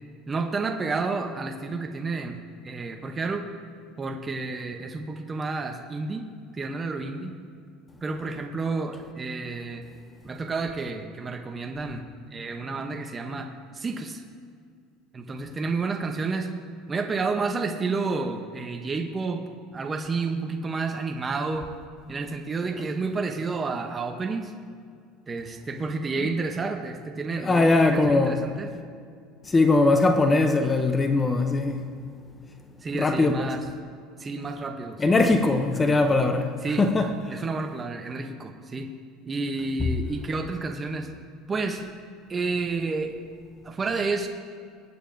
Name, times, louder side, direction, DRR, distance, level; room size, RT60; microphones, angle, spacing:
voice 1, 0.3-2.4 2.6-3.5 4.0-6.3 6.5-7.3 8.0-9.8 10.2-12.0 12.3-13.5 13.7-14.2 15.1-16.5 16.9-19.4 19.7-21.7 22.1-24.5 25.3-28.7 32.8-33.7 34.2-35.2 35.4-36.0 36.6-36.9 37.3-38.9 39.3-41.1 41.5-41.8 42.3-43.1 43.6-44.3, right 3 dB, 15° right, 0.7 m, -30 dB
voice 2, 27.4-28.4 29.5-31.9 32.9-33.5 35.0-37.4, left 3 dB, 15° left, 0.6 m, -21 dB
22.5 x 8.8 x 2.6 m
cardioid pair, 160°, 0 cm